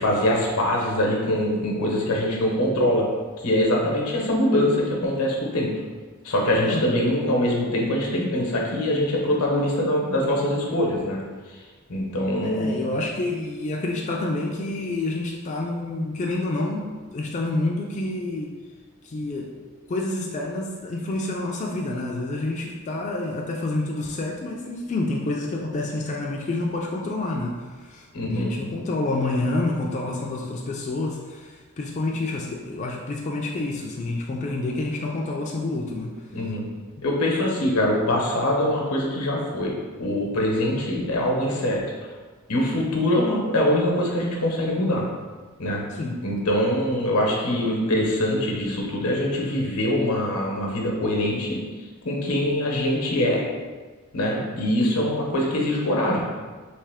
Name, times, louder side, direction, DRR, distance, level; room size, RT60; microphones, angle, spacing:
voice 1, 0.0-3.1 3.4-5.7 6.2-11.2 11.5-11.6 11.9-13.0 28.1-28.5 36.3-36.7 37.0-39.7 40.0-41.8 42.5-45.1 45.6-45.8 46.2-51.6 52.0-53.4 54.1-56.2, left 1 dB, 85° left, -1 dB, 0.9 m, -23 dB
voice 2, 12.4-18.5 19.0-19.6 19.9-36.3 37.0-37.1 45.9-46.2, left 2 dB, 35° left, -1 dB, 0.3 m, -28 dB
3.3 x 2.9 x 3.4 m, 1.4 s
head